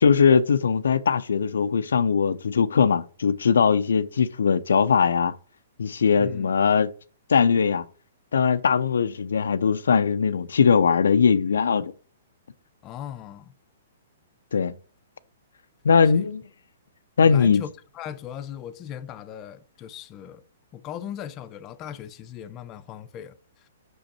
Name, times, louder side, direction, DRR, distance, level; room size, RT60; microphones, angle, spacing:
voice 1, 0.0-5.3 5.8-6.9 7.3-7.8 8.3-11.9 14.5-14.7 15.8-16.4 17.2-17.6, left 6 dB, 80° left, 0.4 m, -20 dB
voice 2, 6.2-6.5 12.8-13.5 16.1-16.2 17.2-20.4 20.7-23.7, left 10 dB, 30° left, 0.6 m, -38 dB
6.3 x 5.2 x 4.2 m
hypercardioid pair, 135°, 0 cm